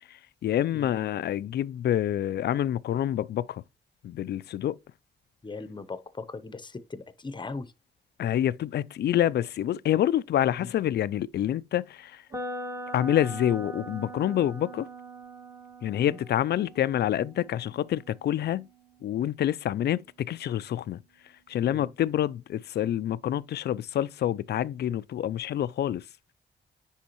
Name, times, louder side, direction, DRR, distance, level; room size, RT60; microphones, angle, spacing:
voice 1, 0.1-3.6 4.0-4.8 8.2-12.2 12.9-14.9 15.8-18.7 19.0-21.0 21.5-26.0, left 11 dB, 65° left, 0.4 m, -27 dB
voice 2, 5.4-7.7 10.6-10.7 15.9-16.2 21.7-21.9, left 3 dB, 25° left, 0.8 m, -39 dB
sound 1, 12.3-20.2, right 1 dB, 20° right, 1.5 m, -42 dB
9.7 x 3.5 x 2.9 m
cardioid pair, 65°, 18 cm